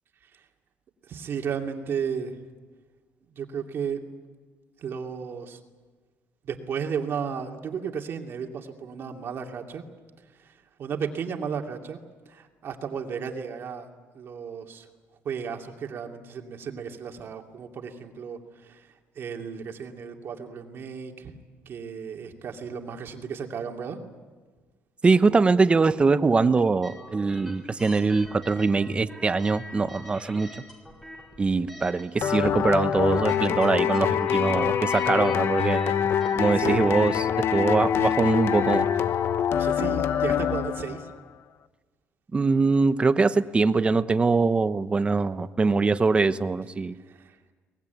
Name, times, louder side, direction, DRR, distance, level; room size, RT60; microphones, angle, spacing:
voice 1, 1.1-2.4 3.3-4.0 4.8-5.6 6.4-9.8 10.3-12.0 12.3-13.9 14.1-14.9 15.2-21.3 21.7-24.0 36.6-36.8 39.5-41.1 46.9-47.4, right 7 dB, 50° right, 3 dB, 2.6 m, -34 dB
voice 2, 25.0-30.5 31.4-35.9 36.3-38.9 42.3-46.9, right 4 dB, 20° right, 12 dB, 0.9 m, -23 dB
sound 1, 26.8-37.2, equal, 5° left, 4.9 m, -45 dB
sound 2, 32.2-41.1, left 9 dB, 55° left, 1.0 m, -25 dB
23.5 x 20.0 x 9.4 m, 1.4 s
cardioid pair, 125°, 5 cm